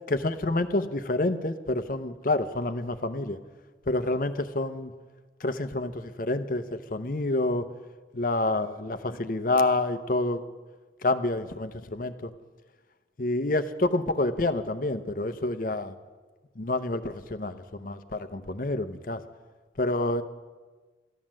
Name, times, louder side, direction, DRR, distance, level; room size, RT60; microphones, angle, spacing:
voice 1, 0.1-3.4 3.9-4.9 5.4-7.7 8.1-10.4 11.0-12.3 13.2-15.9 16.6-19.2 19.8-20.2, left 2 dB, 50° left, 10 dB, 0.7 m, -28 dB
14.5 x 11.0 x 7.5 m, 1.3 s
head